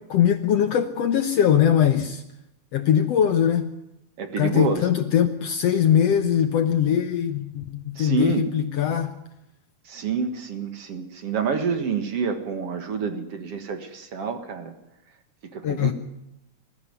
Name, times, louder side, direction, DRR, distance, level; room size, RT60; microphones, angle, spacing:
voice 1, 0.1-2.2 2.7-3.6 4.4-9.1 15.6-15.9, left 9 dB, 65° left, 9 dB, 1.7 m, -21 dB
voice 2, 4.2-4.9 8.0-8.5 9.9-14.7 15.5-15.9, right 5 dB, 55° right, 8 dB, 2.3 m, -28 dB
21.0 x 14.5 x 9.3 m, 0.87 s
omnidirectional pair, 3.7 m